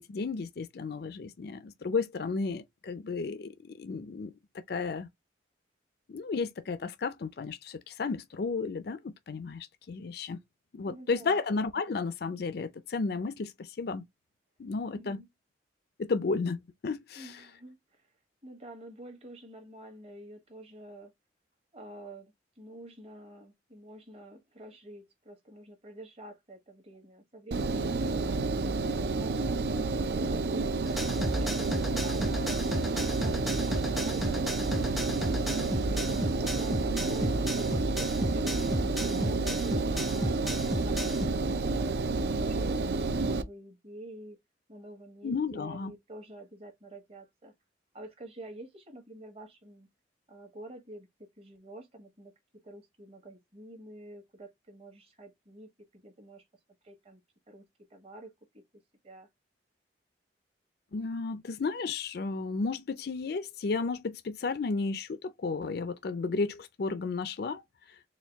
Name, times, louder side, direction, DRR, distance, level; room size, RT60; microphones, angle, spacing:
voice 1, 0.0-5.1 6.1-10.4 10.7-14.1 14.6-15.2 16.0-17.3 45.2-45.9 60.9-67.6, left 4 dB, 60° left, 0.4 m, -33 dB
voice 2, 10.8-11.4 14.9-15.3 17.1-18.0 18.4-21.1 21.7-29.6 30.0-40.6 40.8-44.4 44.7-47.5 47.9-49.9 50.3-56.4 56.8-57.2 57.5-57.6 57.9-58.6 59.0-59.3, right 1 dB, 35° right, 1.2 m, -48 dB
Engine, 27.5-43.4, right 3 dB, 60° right, 0.4 m, -30 dB
sound 1, 30.9-41.3, equal, ahead, 0.4 m, -34 dB
4.4 x 2.3 x 3.4 m
head